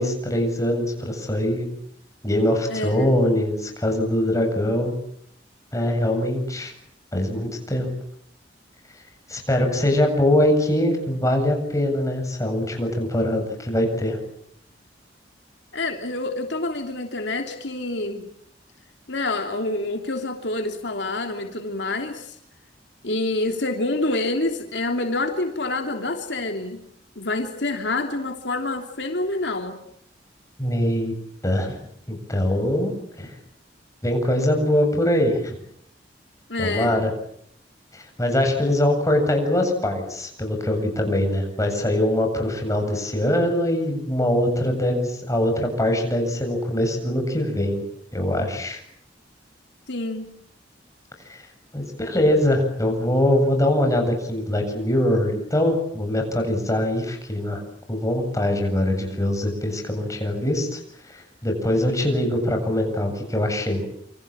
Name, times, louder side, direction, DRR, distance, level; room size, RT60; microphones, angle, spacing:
voice 1, 0.0-1.7 2.2-4.9 5.7-6.7 7.1-7.9 9.3-14.2 30.6-31.1 31.4-31.8 32.1-33.3 34.0-35.6 36.6-37.1 37.9-47.8 48.1-48.8 51.3-51.5 51.7-57.6 57.9-60.8 61.1-63.9, left 1 dB, 20° left, 4 dB, 7.8 m, -23 dB
voice 2, 2.7-3.1 15.7-18.3 19.1-22.4 23.0-26.8 27.1-29.8 36.5-37.0 49.9-50.4, left 2 dB, 70° left, 4 dB, 3.1 m, -27 dB
27.5 x 26.5 x 7.5 m, 0.69 s
head